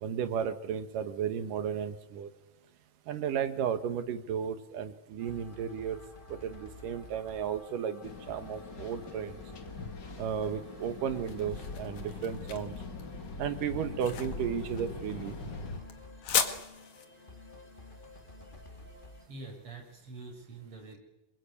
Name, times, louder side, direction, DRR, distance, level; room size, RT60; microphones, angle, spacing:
voice 1, 0.0-2.3 3.1-6.0 6.3-9.4 10.2-12.7 13.4-15.3, right 8 dB, 80° right, 10 dB, 3.1 m, -34 dB
sound 1, 5.2-19.3, left 2 dB, 20° left, 1.9 m, -51 dB
sound 2, 8.0-15.8, left 3 dB, 35° left, 2.4 m, -42 dB
sound 3, 10.8-19.8, left 7 dB, 60° left, 3.1 m, -38 dB
voice 2, 19.3-21.0, right 3 dB, 40° right, 2 dB, 7.2 m, -45 dB
28.0 x 22.5 x 8.5 m, 0.96 s
omnidirectional pair, 3.7 m